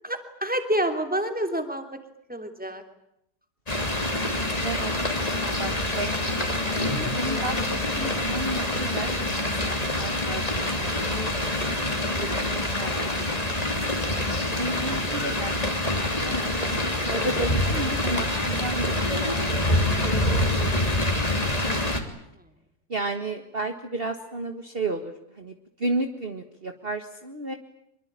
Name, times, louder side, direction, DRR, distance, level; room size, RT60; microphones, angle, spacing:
voice 1, 0.0-2.0 2.3-2.8 22.3-22.4, right 1 dB, 5° right, 6 dB, 3.1 m, -28 dB
sound 1, 3.7-22.0, left 1 dB, 25° left, 3.2 m, -26 dB
voice 2, 4.1-4.9 5.3-11.5 11.8-12.9 13.3-13.7 14.5-19.0 19.4-20.9 22.9-27.5, right 2 dB, 35° right, 5 dB, 1.9 m, -34 dB
25.0 x 23.0 x 9.0 m, 0.79 s
omnidirectional pair, 1.7 m